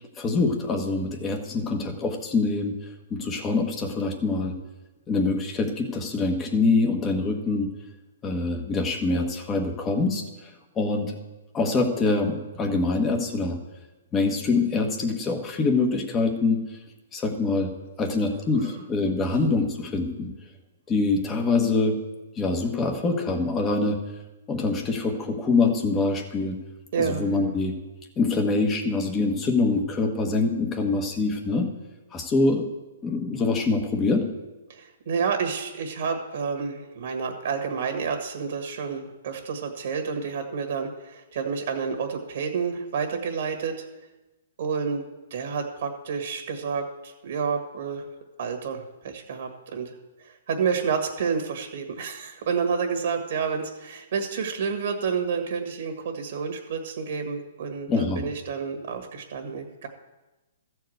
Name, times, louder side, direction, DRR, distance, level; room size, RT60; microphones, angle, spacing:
voice 1, 0.2-2.7 3.1-4.5 5.1-7.7 8.2-10.5 10.7-11.2 11.5-13.6 14.1-16.6 17.1-17.7 18.0-20.3 20.9-22.0 22.4-24.0 24.5-26.6 27.0-27.7 28.2-31.7 32.1-32.6 33.0-34.3 57.9-58.2, left 3 dB, 15° left, 5 dB, 1.2 m, -24 dB
voice 2, 26.9-27.6 34.7-43.9 44.6-45.0 45.3-48.1 48.4-59.9, right 6 dB, 60° right, 4 dB, 1.6 m, -29 dB
14.0 x 4.7 x 7.8 m, 1.1 s
hypercardioid pair, 155°, 0 cm